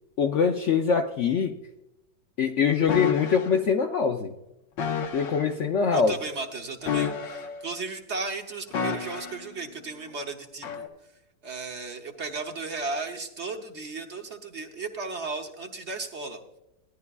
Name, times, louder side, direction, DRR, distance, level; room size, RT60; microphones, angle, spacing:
voice 1, 0.2-1.5 2.4-4.3 5.1-6.1, left 6 dB, 65° left, 4 dB, 0.7 m, -23 dB
sound 1, 2.9-3.5 4.8-5.4 6.8-7.7 8.7-9.5 10.6-10.9, left 6 dB, 90° left, 1.8 m, -30 dB
voice 2, 5.9-10.9 11.4-16.4, right 3 dB, 50° right, 4 dB, 0.9 m, -35 dB
16.5 x 11.0 x 2.3 m, 0.89 s
omnidirectional pair, 1.9 m